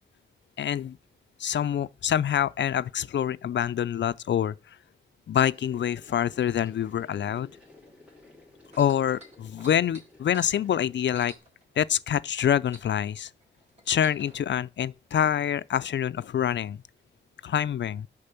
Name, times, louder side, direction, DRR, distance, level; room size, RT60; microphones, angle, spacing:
voice 1, 0.6-1.0 1.4-4.5 5.3-7.5 8.8-11.3 11.8-13.3 13.9-16.8 17.4-18.1, left 9 dB, 70° left, 0.4 m, -26 dB
sound 1, 5.5-11.4, left 2 dB, 5° right, 2.7 m, -54 dB
sound 2, 8.6-12.1 12.4-14.4 15.2-15.3, right 1 dB, 35° right, 3.7 m, -50 dB
6.8 x 5.2 x 6.8 m
wide cardioid pair, 155°, 19 cm